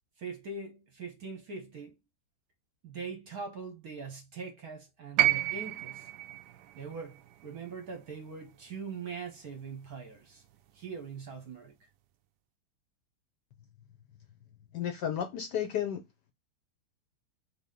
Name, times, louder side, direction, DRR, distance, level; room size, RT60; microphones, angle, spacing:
voice 1, 0.2-1.9 2.8-6.1 6.7-10.4 10.7-11.7, right 5 dB, 60° right, 1.1 m, -42 dB
sound 1, 5.2-9.4 10.5-10.6, right 15 dB, 85° right, 0.8 m, -32 dB
voice 2, 14.7-16.0, left 9 dB, 70° left, 1.0 m, -32 dB
4.0 x 3.4 x 3.7 m
omnidirectional pair, 2.3 m